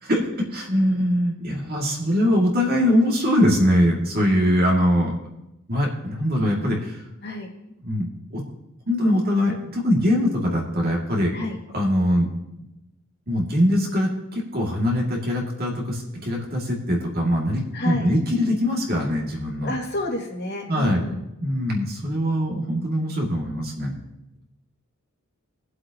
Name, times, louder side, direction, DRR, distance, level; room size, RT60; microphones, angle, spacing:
voice 1, 0.5-5.1 5.7-7.0 7.8-8.4 8.9-11.3 11.7-12.3 13.3-19.7 20.7-21.0 21.4-23.9, equal, 45° right, -1 dB, 2.4 m, -22 dB
voice 2, 17.7-18.1 19.6-21.2, left 2 dB, 55° left, -2 dB, 2.4 m, -29 dB
21.5 x 7.7 x 3.0 m, 0.88 s
head